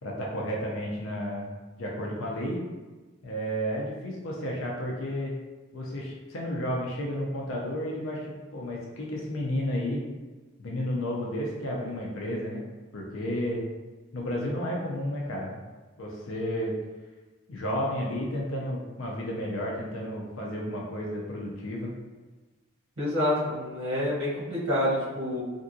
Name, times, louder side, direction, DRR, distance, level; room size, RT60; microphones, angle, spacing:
voice 1, 0.0-2.6 3.2-5.3 5.7-10.0 10.6-12.6 12.9-13.6 14.1-15.6 16.0-16.8 17.5-21.9, equal, 80° left, -3 dB, 0.6 m, -32 dB
voice 2, 23.0-25.4, left 1 dB, 70° right, -8 dB, 1.2 m, -27 dB
3.4 x 2.6 x 2.6 m, 1.2 s
head